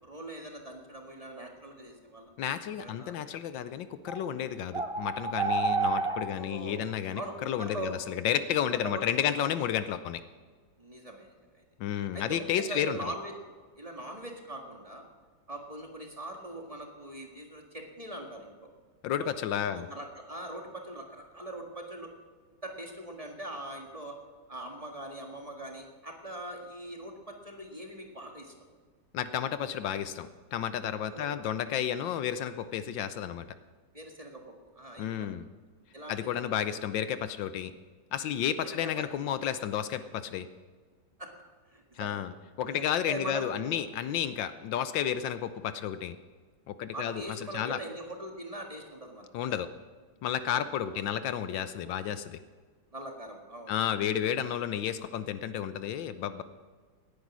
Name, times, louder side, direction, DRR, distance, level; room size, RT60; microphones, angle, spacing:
voice 1, 0.0-2.3 2.8-3.2 6.3-6.8 7.1-8.0 8.7-9.4 10.8-11.6 12.1-13.3 13.8-15.0 15.5-18.7 19.2-19.3 19.7-22.1 22.6-24.2 24.5-28.5 31.1-31.4 33.9-35.3 35.9-36.4 38.6-39.1 41.2-41.3 41.7-42.2 42.7-43.8 46.9-49.3 50.9-51.0 52.9-53.8, right 1 dB, 20° right, 1 dB, 1.8 m, -42 dB
voice 2, 2.4-10.2 11.8-13.0 19.0-19.8 29.1-33.5 35.0-35.5 36.1-37.7 38.1-40.5 42.0-46.2 46.7-47.2 47.5-47.8 49.3-49.7 50.2-52.4 53.7-56.4, left 9 dB, 75° left, 12 dB, 1.4 m, -32 dB
sound 1, 4.1-4.2 4.7-6.2, right 4 dB, 60° right, 0.3 m, -29 dB
18.0 x 10.5 x 6.2 m, 1.5 s
omnidirectional pair, 2.1 m